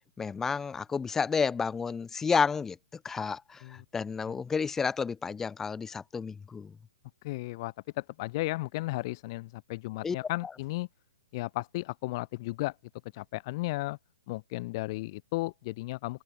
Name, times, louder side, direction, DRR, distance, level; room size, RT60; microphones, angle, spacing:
voice 1, 0.2-2.8 3.0-6.8 10.0-10.2, left 5 dB, 10° left, 0.9 m, -31 dB
voice 2, 7.2-10.9 11.3-12.7 13.1-14.0 14.3-16.2, left 20 dB, 40° left, 0.8 m, -34 dB
open air
hypercardioid pair, 135°, 4 cm